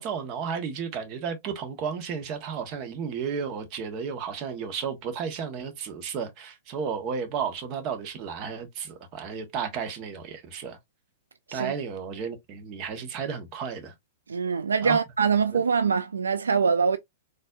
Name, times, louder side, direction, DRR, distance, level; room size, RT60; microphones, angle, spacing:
voice 1, 0.0-10.8 11.5-13.9 14.8-15.0 15.5-15.6, right 6 dB, 40° right, 1.1 m, -33 dB
voice 2, 14.3-17.0, right 6 dB, 85° right, 0.3 m, -24 dB
4.1 x 2.6 x 2.3 m
hypercardioid pair, 115°, 0 cm